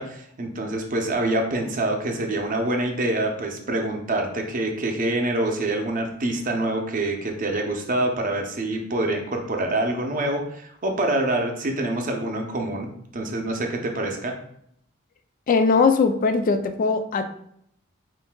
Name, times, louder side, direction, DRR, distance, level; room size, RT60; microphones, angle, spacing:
voice 1, 0.0-12.9 13.1-14.3, right 1 dB, 40° right, 3 dB, 0.6 m, -26 dB
voice 2, 15.5-17.2, left 4 dB, 40° left, 7 dB, 0.3 m, -20 dB
7.2 x 2.6 x 2.3 m, 0.71 s
head